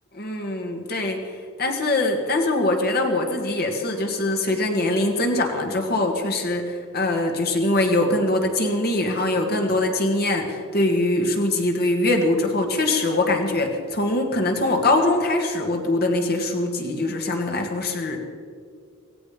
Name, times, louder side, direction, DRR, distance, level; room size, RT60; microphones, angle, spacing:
voice 1, 0.1-1.2 1.6-18.2, left 2 dB, 45° left, 3 dB, 2.0 m, -23 dB
17.0 x 16.0 x 5.1 m, 2.1 s
head